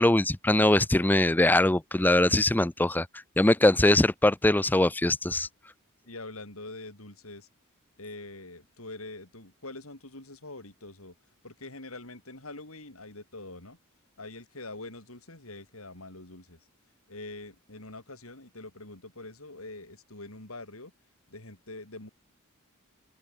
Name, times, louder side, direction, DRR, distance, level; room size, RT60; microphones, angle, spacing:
voice 1, 0.0-3.1 3.4-5.5, left 1 dB, 10° left, 0.5 m, -22 dB
voice 2, 6.1-7.5 8.0-11.2 11.4-13.8 14.2-16.6 17.1-20.9 21.3-22.1, left 2 dB, 70° left, 5.6 m, -44 dB
open air
head